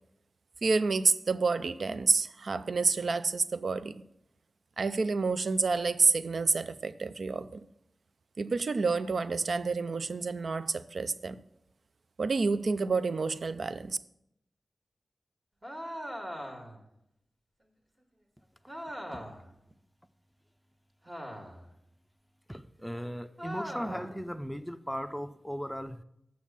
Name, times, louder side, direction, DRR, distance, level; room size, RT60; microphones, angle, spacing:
voice 1, 0.6-3.9 4.8-7.6 8.4-11.4 12.2-14.0, right 4 dB, 70° right, 0.4 m, -29 dB
sound 1, 15.6-16.8 18.7-19.5 21.0-21.7 23.4-24.2, equal, 25° right, 1.8 m, -40 dB
voice 2, 22.5-26.0, equal, ahead, 0.6 m, -37 dB
7.2 x 6.4 x 7.3 m
cardioid pair, 55°, 0 cm